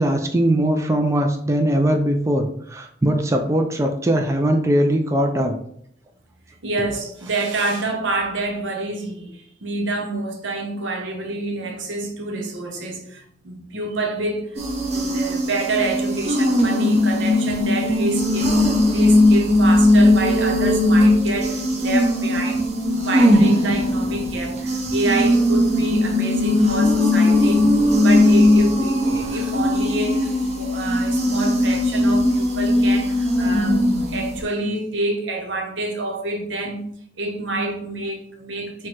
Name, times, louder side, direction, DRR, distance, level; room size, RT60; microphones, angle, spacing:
voice 1, 0.0-5.5, right 1 dB, 15° right, 0.4 m, -20 dB
voice 2, 6.6-14.6 14.9-22.6 23.0-27.6 28.0-36.8 37.2-38.9, right 2 dB, 80° right, 0.9 m, -27 dB
sound 1, 14.6-34.4, left 1 dB, 35° right, 0.8 m, -18 dB
4.6 x 2.2 x 4.4 m
head